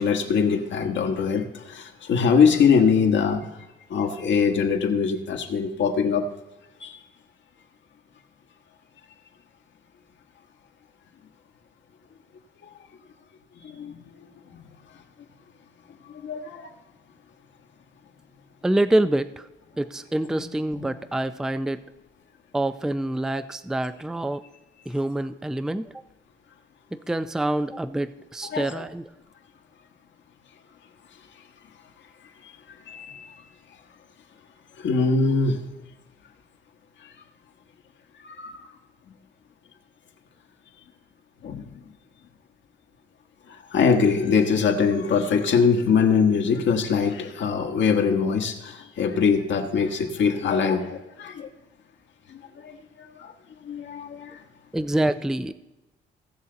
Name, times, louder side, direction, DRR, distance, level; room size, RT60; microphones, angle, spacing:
voice 1, 0.0-3.4 3.9-6.3 6.8-7.0 13.6-14.0 14.5-14.6 16.1-16.7 20.3-20.4 28.5-28.8 32.9-33.4 34.8-35.6 38.2-38.7 41.4-41.8 43.5-51.5 52.3-52.8 53.2-53.3 53.6-54.4, left 5 dB, 65° left, 3 dB, 1.4 m, -23 dB
voice 2, 18.6-19.5 19.8-21.8 22.5-24.4 24.9-25.9 26.9-29.1 54.7-55.5, right 1 dB, 5° right, 12 dB, 0.4 m, -26 dB
17.0 x 6.4 x 3.9 m, 1.0 s
cardioid pair, 90°, 20 cm